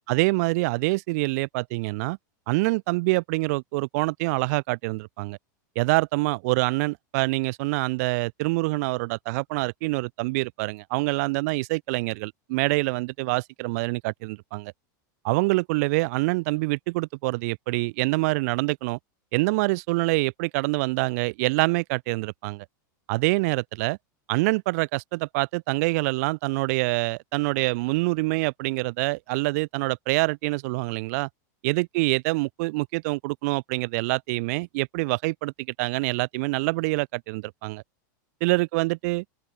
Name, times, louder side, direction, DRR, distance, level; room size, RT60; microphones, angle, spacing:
voice 1, 0.1-2.2 2.5-5.4 5.8-14.7 15.2-19.0 19.3-22.7 23.1-24.0 24.3-31.3 31.6-37.8 38.4-39.2, right 25 dB, 50° right, 5.7 m, -26 dB
open air
supercardioid pair, 160°, 11 cm